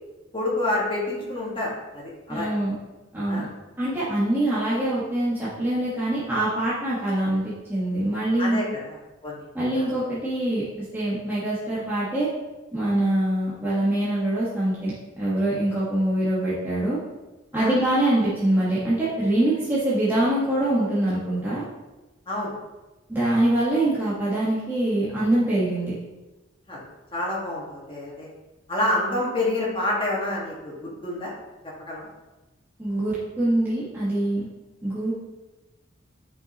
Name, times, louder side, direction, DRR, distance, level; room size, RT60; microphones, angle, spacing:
voice 1, 0.3-2.5 3.3-3.5 8.4-9.4 9.7-9.9 17.5-17.7 22.3-22.6 26.7-26.8 27.1-28.3 28.7-30.7 31.0-31.3 31.8-32.1, left 1 dB, 25° left, -5 dB, 1.7 m, -28 dB
voice 2, 2.3-2.7 3.1-3.4 3.8-8.6 9.5-10.6 10.9-12.3 12.7-17.0 17.5-21.6 23.1-25.9 32.8-34.5 34.8-35.1, right 1 dB, 10° right, -11 dB, 1.4 m, -24 dB
8.7 x 5.6 x 3.0 m, 1.1 s
head